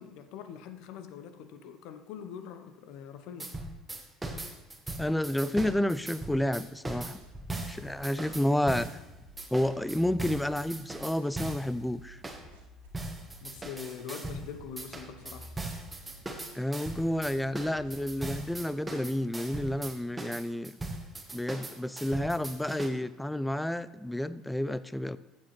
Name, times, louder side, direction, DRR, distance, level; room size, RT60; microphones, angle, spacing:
voice 1, 0.0-3.5 13.4-15.5, left 7 dB, 65° left, 10 dB, 0.7 m, -43 dB
sound 1, 3.4-9.0 9.4-11.7 12.2-12.4 12.9-14.5 14.8-22.9, right 2 dB, 15° right, 1.5 m, -39 dB
voice 2, 5.0-7.2 7.7-9.0 9.5-12.2 16.5-20.8 21.3-25.2, left 1 dB, 5° left, 16 dB, 0.4 m, -30 dB
sound 2, 7.2-18.5, equal, 80° right, 1.8 m, -52 dB
14.0 x 7.3 x 3.1 m, 1.0 s
hypercardioid pair, 60°, 0 cm